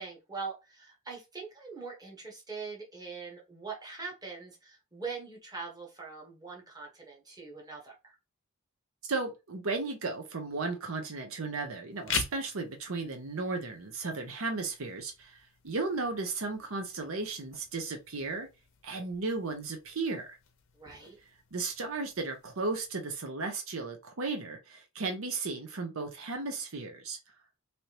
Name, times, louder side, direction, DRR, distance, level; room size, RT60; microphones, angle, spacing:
voice 1, 0.0-8.2 20.7-21.2, right 4 dB, 20° right, 1.1 m, -42 dB
voice 2, 9.0-18.5 18.8-20.3 21.5-27.2, right 3 dB, 75° right, 0.8 m, -35 dB
sound 1, 11.9-22.9, left 7 dB, 65° left, 0.7 m, -44 dB
3.4 x 2.7 x 2.9 m
head